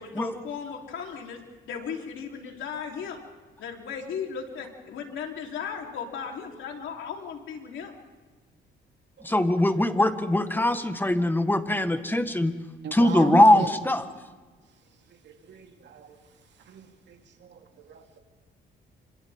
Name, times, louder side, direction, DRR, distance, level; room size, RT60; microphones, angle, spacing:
voice 1, 0.0-1.4 1.7-3.2 3.6-8.0, left 6 dB, 75° left, 1 dB, 3.8 m, -36 dB
voice 2, 9.2-12.5 12.9-14.0, left 1 dB, 10° left, 9 dB, 1.6 m, -21 dB
voice 3, 12.8-13.7 15.2-16.2 16.7-17.6 17.9-18.0, right 7 dB, 65° right, 4 dB, 2.6 m, -36 dB
27.5 x 26.0 x 3.7 m, 1.3 s
cardioid pair, 90°, 20 cm